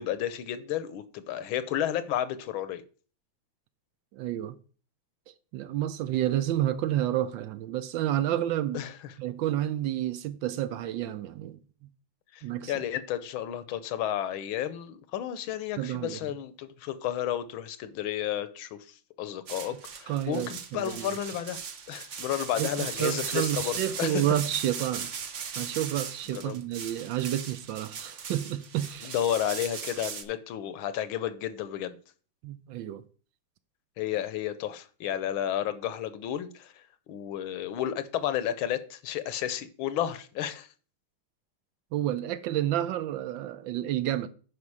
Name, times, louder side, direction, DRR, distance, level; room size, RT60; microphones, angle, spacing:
voice 1, 0.0-2.8 8.7-8.9 12.3-21.6 21.9-24.2 26.3-26.6 29.0-32.0 34.0-36.7 37.1-40.7, left 11 dB, 80° left, 1.5 m, -32 dB
voice 2, 4.1-4.6 5.5-8.8 9.2-11.6 12.4-12.7 15.8-16.2 20.1-21.2 22.6-25.1 25.6-29.1 32.4-33.0 41.9-44.3, right 12 dB, 75° right, 1.2 m, -30 dB
sound 1, 19.5-30.2, right 6 dB, 50° right, 0.9 m, -38 dB
9.6 x 5.5 x 4.8 m
omnidirectional pair, 2.3 m